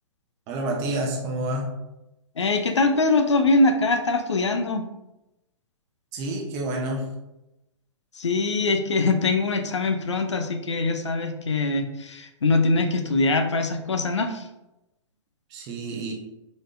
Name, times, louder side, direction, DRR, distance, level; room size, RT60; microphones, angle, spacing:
voice 1, 0.5-1.7 6.1-7.1 15.5-16.1, right 1 dB, 25° right, 1 dB, 0.8 m, -28 dB
voice 2, 2.4-4.8 8.2-14.4, left 3 dB, 65° left, 6 dB, 0.6 m, -23 dB
4.9 x 4.1 x 2.5 m, 0.92 s
figure-of-eight pair, 115°, 16 cm